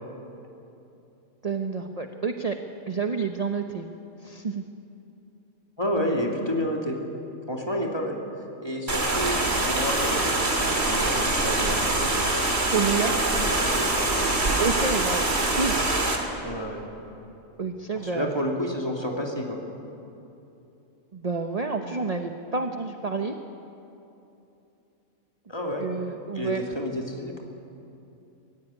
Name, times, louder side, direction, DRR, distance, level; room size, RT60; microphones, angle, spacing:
voice 1, 1.4-2.6 2.9-3.9 4.2-4.6 12.7-13.1 14.6-15.8 17.6-18.3 21.1-23.3 25.8-26.6, right 4 dB, 30° right, 5 dB, 0.9 m, -29 dB
voice 2, 5.8-7.0 7.5-8.2 8.6-12.1 12.9-13.0 13.3-14.3 16.4-16.8 17.9-19.6 25.5-25.9 26.3-27.4, equal, 20° left, 0 dB, 2.7 m, -30 dB
sound 1, 8.9-16.2, right 2 dB, 50° right, 2.9 m, -24 dB
24.5 x 15.5 x 9.9 m, 2.9 s
omnidirectional pair, 1.4 m